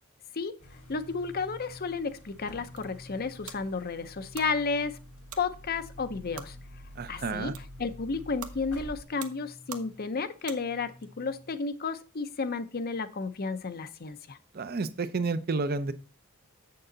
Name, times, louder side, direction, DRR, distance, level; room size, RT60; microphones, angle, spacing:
sound 1, 0.6-9.0, equal, 90° left, 3.3 m, -49 dB
sound 2, 0.6-11.6, left 1 dB, 5° right, 0.9 m, -53 dB
voice 1, 0.9-5.0 5.4-6.6 7.1-7.5 7.8-14.4, left 4 dB, 45° left, 12 dB, 0.6 m, -32 dB
sound 3, 2.7-11.1, right 8 dB, 80° right, 0.9 m, -49 dB
voice 2, 7.0-7.5 14.5-15.9, right 3 dB, 45° right, 13 dB, 0.6 m, -30 dB
7.7 x 6.7 x 3.9 m, 0.35 s
head